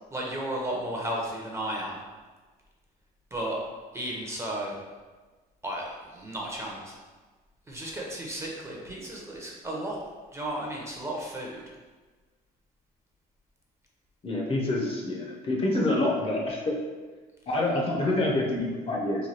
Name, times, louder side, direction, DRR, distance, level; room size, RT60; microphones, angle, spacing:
voice 1, 0.1-2.0 3.3-3.6 3.9-4.7 5.6-6.9 7.7-10.0 10.3-11.6, right 1 dB, 15° right, -2 dB, 0.6 m, -34 dB
voice 2, 14.2-16.8 17.5-19.3, left 2 dB, 35° left, -1 dB, 0.7 m, -27 dB
3.1 x 2.3 x 4.1 m, 1.3 s
cardioid pair, 110°, 17 cm